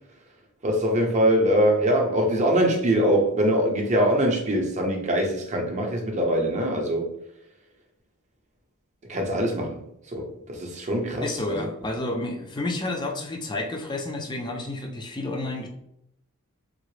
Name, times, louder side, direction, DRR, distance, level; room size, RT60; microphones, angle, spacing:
voice 1, 0.6-7.1 9.1-11.7, equal, 30° right, 1 dB, 0.6 m, -23 dB
voice 2, 11.2-15.7, left 2 dB, 20° left, 2 dB, 0.4 m, -30 dB
3.7 x 2.0 x 3.1 m, 0.79 s
head